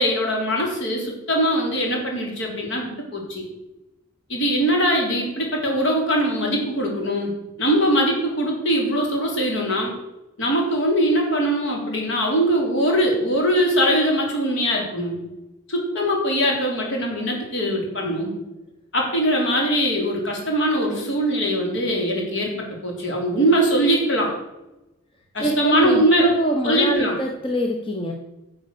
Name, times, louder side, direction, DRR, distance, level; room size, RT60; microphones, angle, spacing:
voice 1, 0.0-3.4 4.3-7.3 7.6-9.9 10.4-15.2 15.7-18.4 18.9-22.5 22.8-24.3 25.3-26.3 26.6-27.2, equal, 60° left, 0 dB, 3.9 m, -21 dB
voice 2, 25.4-28.1, right 1 dB, 25° left, 2 dB, 1.0 m, -24 dB
11.0 x 7.2 x 6.9 m, 0.96 s
head